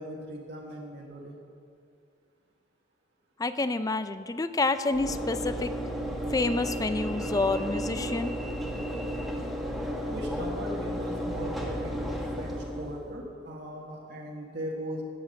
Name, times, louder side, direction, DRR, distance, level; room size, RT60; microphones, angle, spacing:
voice 1, 0.0-1.4 10.1-15.0, right 1 dB, 60° right, -2 dB, 1.5 m, -39 dB
voice 2, 3.4-5.7 6.3-8.3, left 3 dB, 20° left, 11 dB, 0.4 m, -28 dB
Train / Engine / Alarm, 4.9-13.2, equal, ahead, 1.3 m, -33 dB
16.5 x 7.2 x 6.4 m, 2.4 s
head